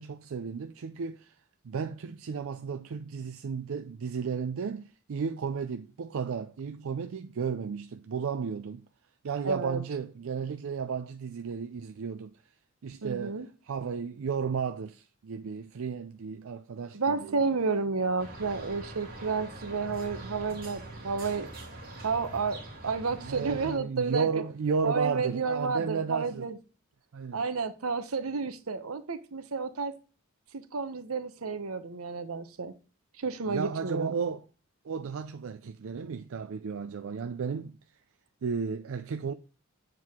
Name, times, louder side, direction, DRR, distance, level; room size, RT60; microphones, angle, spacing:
voice 1, 0.0-1.3 1.6-8.8 9.2-12.3 12.8-13.4 13.6-17.4 23.2-26.5 27.1-27.4 33.4-34.4 34.8-37.8 38.4-39.3, right 5 dB, 65° right, 0.4 m, -33 dB
voice 2, 9.4-9.8 13.0-13.5 16.9-21.5 22.0-24.3 24.8-26.6 27.3-29.9 30.5-32.7 33.2-34.2, right 4 dB, 85° right, 0.8 m, -31 dB
sound 1, 18.2-23.8, right 2 dB, 45° right, 2.5 m, -43 dB
7.6 x 4.7 x 3.5 m
head